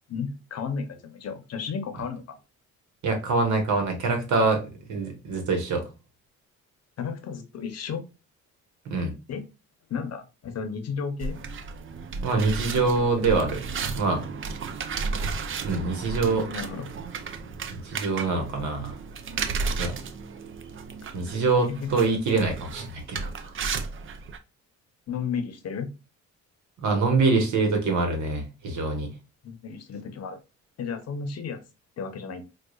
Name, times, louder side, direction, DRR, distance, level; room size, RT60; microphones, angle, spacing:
voice 1, 0.1-2.4 7.0-8.0 9.3-9.5 9.9-11.4 16.5-16.9 21.7-21.9 25.1-25.9 29.4-30.4 30.8-31.6 32.0-32.4, left 6 dB, 55° left, 0.8 m, -33 dB
voice 2, 3.0-5.8 8.8-9.1 12.2-13.6 13.9-14.2 15.6-16.5 17.7-18.9 19.8-19.9 21.1-23.5 26.8-29.1, right 3 dB, 70° right, 1.3 m, -25 dB
sound 1, 11.2-24.4, right 4 dB, 45° right, 0.5 m, -34 dB
4.6 x 2.4 x 2.4 m
cardioid pair, 90°, 30 cm